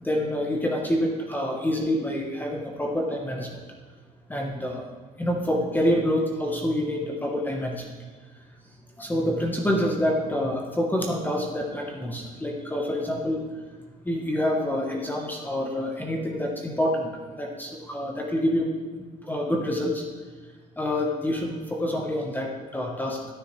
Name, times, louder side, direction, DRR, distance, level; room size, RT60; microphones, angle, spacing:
voice 1, 0.0-3.6 4.3-4.8 5.2-8.0 9.0-13.6 14.0-17.1 17.4-18.7 19.2-20.0 20.8-23.2, left 1 dB, 10° left, 0 dB, 1.0 m, -27 dB
12.0 x 7.0 x 3.2 m, 1.5 s
cardioid pair, 110°, 17 cm